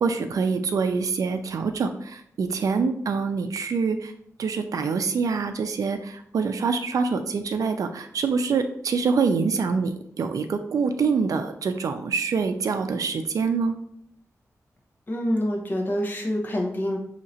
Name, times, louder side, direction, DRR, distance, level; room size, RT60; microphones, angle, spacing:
voice 1, 0.0-4.1 4.4-13.7, right 5 dB, 80° right, 7 dB, 0.4 m, -25 dB
voice 2, 15.1-17.0, equal, 30° left, -1 dB, 1.1 m, -26 dB
6.3 x 2.8 x 2.8 m, 0.69 s
wide cardioid pair, 155°, 6 cm